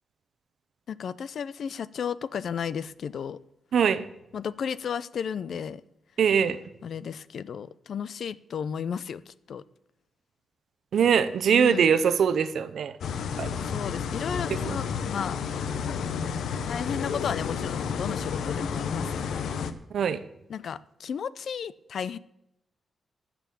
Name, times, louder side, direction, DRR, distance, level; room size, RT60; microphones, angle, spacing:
voice 1, 0.9-3.4 4.3-5.8 6.8-9.6 11.5-11.9 13.6-14.8 15.1-15.4 16.6-19.4 20.5-22.2, left 7 dB, 60° left, 18 dB, 0.4 m, -34 dB
voice 2, 3.7-4.0 6.2-6.6 10.9-12.9 13.4-13.5 14.5-14.8 19.9-20.2, right 7 dB, 65° right, 13 dB, 0.7 m, -22 dB
sound 1, 13.0-19.7, left 6 dB, 90° left, 0.8 m, -31 dB
13.5 x 6.1 x 8.4 m, 0.86 s
wide cardioid pair, 165°, 0 cm